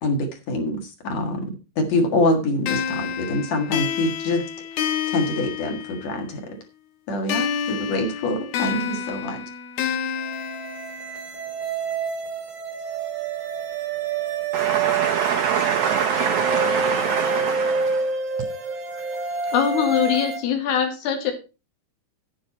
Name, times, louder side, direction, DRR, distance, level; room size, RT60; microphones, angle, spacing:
voice 1, 0.0-4.4 5.1-6.6 7.1-9.4, left 2 dB, 50° left, 4 dB, 2.7 m, -25 dB
sound 1, 2.7-6.3 7.3-11.3, left 8 dB, 65° left, 2.0 m, -29 dB
sound 2, 10.2-20.4, right 5 dB, 50° right, 1.4 m, -28 dB
voice 2, 14.5-18.1, right 7 dB, 80° right, 4 dB, 1.6 m, -24 dB
voice 3, 19.5-21.3, left 8 dB, 85° left, 6 dB, 4.0 m, -22 dB
10.0 x 10.0 x 4.2 m, 0.30 s
omnidirectional pair, 4.6 m